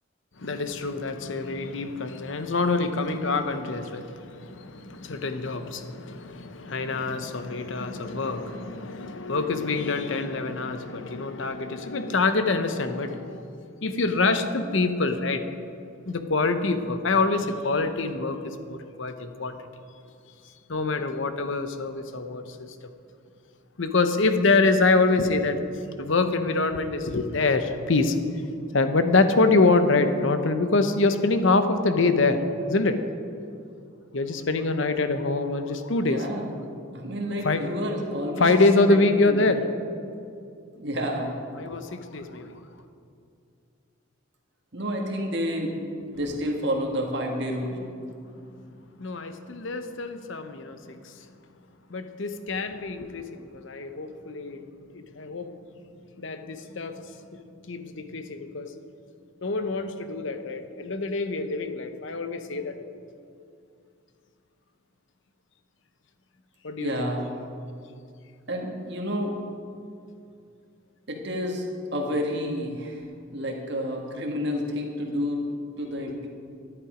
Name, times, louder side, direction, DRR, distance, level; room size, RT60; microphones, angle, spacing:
voice 1, 0.4-13.4 13.8-15.4 16.0-19.6 20.7-22.7 23.8-25.6 26.0-28.2 28.7-32.4 32.7-33.0 34.1-36.2 37.4-37.6 38.4-39.6 41.6-42.6 49.0-51.1 51.9-54.6 54.9-55.5 56.2-58.7 59.4-62.8 66.6-66.9, left 3 dB, 65° left, 9 dB, 0.8 m, -25 dB
voice 2, 36.0-36.5 36.9-38.5 38.9-39.4 40.7-41.3 44.7-45.8 46.1-47.8 66.8-67.3 68.5-69.4 71.1-71.7 71.9-75.4 75.8-76.3, equal, 55° right, 1 dB, 1.7 m, -30 dB
11.0 x 11.0 x 5.0 m, 2.4 s
head